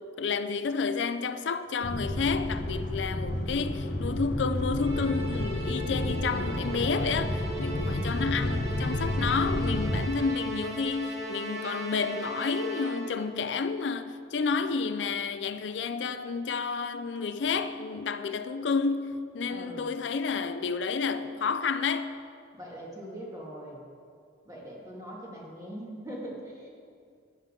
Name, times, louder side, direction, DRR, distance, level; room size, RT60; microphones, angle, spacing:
voice 1, 0.2-22.2, left 5 dB, 85° left, 0.5 m, -30 dB
sound 1, 1.8-10.1, left 1 dB, 65° left, 0.9 m, -31 dB
Musical instrument, 4.8-13.3, right 1 dB, 70° right, 1.9 m, -38 dB
voice 2, 7.7-8.1 19.5-19.9 22.5-23.9 24.4-26.7, right 1 dB, 20° right, 2.1 m, -42 dB
12.5 x 9.4 x 3.8 m
head